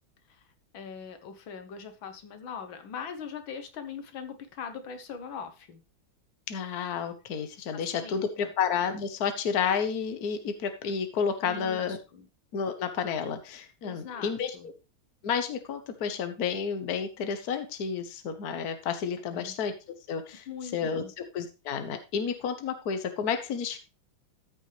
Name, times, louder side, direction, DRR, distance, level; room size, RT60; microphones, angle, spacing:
voice 1, 0.7-5.8 7.7-8.5 11.4-12.3 13.8-14.7 19.3-19.6 20.5-21.1, left 6 dB, 80° left, 8 dB, 1.9 m, -41 dB
voice 2, 6.5-12.0 12.5-14.7 15.2-19.7 20.1-20.4 20.7-23.8, left 6 dB, 55° left, 8 dB, 1.5 m, -31 dB
13.5 x 6.3 x 3.2 m, 0.29 s
omnidirectional pair, 2.2 m